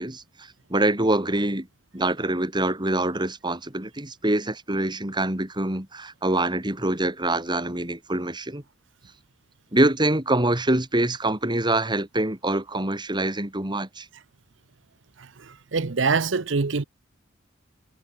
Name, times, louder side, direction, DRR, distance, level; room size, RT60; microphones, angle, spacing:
voice 1, 0.0-1.7 1.9-8.6 9.7-14.1, right 1 dB, 25° right, 3.2 m, -25 dB
voice 2, 15.7-16.8, right 4 dB, 75° right, 0.8 m, -23 dB
head